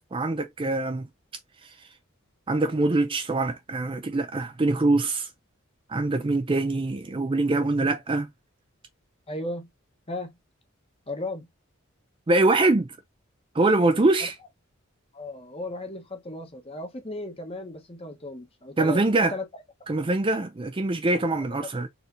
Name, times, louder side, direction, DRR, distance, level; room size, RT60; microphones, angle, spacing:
voice 1, 0.1-1.1 2.5-5.3 5.9-8.3 12.3-12.9 13.5-14.3 18.8-19.3 19.9-21.9, right 2 dB, 25° right, 0.4 m, -23 dB
voice 2, 9.3-9.7 10.1-10.4 11.1-11.5 14.2-14.3 15.1-19.4 21.1-21.2, left 2 dB, 30° left, 1.1 m, -36 dB
4.3 x 3.2 x 2.7 m
head